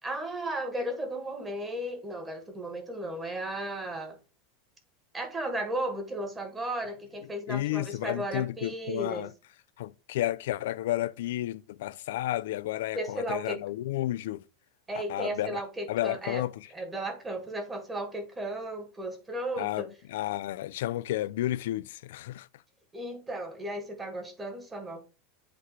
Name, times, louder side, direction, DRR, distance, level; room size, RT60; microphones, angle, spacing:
voice 1, 0.0-4.2 5.1-9.3 12.9-13.6 14.9-16.4 16.7-19.9 22.9-25.0, right 1 dB, 10° right, 1.5 m, -35 dB
voice 2, 7.5-9.3 9.8-14.4 14.9-15.6 15.9-16.7 19.6-22.5, left 14 dB, 75° left, 0.4 m, -32 dB
8.0 x 3.2 x 4.9 m
supercardioid pair, 160°, 0 cm